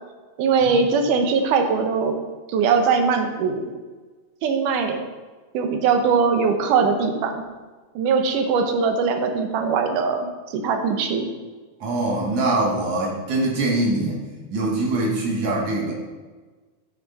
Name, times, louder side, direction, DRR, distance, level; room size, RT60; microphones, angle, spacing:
voice 1, 0.4-2.1 2.5-3.7 4.4-5.0 5.5-7.4 8.0-11.3, right 5 dB, 90° right, 5 dB, 2.5 m, -21 dB
voice 2, 11.8-14.2 14.5-15.9, right 2 dB, 70° right, -2 dB, 3.2 m, -23 dB
11.0 x 6.2 x 4.2 m, 1.3 s
omnidirectional pair, 3.5 m